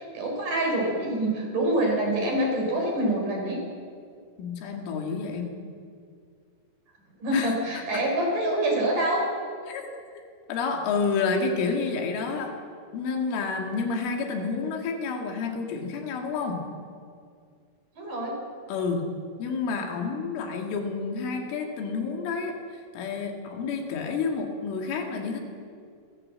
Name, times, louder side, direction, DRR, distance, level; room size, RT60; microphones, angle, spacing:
voice 1, 0.0-3.6 7.2-9.2 17.9-18.4, right 1 dB, 45° right, 0 dB, 6.1 m, -26 dB
voice 2, 4.4-5.6 7.3-8.0 9.7-9.8 10.5-12.5 12.9-16.7 18.7-19.1 19.4-25.4, left 4 dB, 90° left, 3 dB, 4.7 m, -29 dB
28.5 x 14.0 x 7.6 m, 2.2 s
omnidirectional pair, 5.5 m